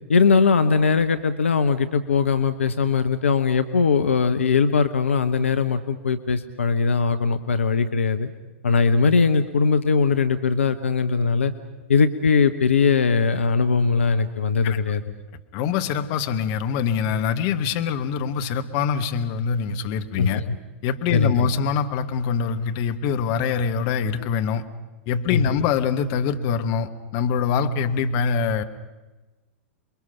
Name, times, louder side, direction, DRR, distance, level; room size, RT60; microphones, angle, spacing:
voice 1, 0.1-8.3 8.6-11.5 11.9-15.1 20.2-20.6 21.1-21.5 25.3-25.4, left 5 dB, 70° left, 10 dB, 0.9 m, -20 dB
voice 2, 14.6-15.0 15.5-20.4 20.8-24.6 25.1-28.6, left 6 dB, 40° left, 8 dB, 1.3 m, -24 dB
28.0 x 22.5 x 5.7 m, 1.2 s
figure-of-eight pair, 100°, 7 cm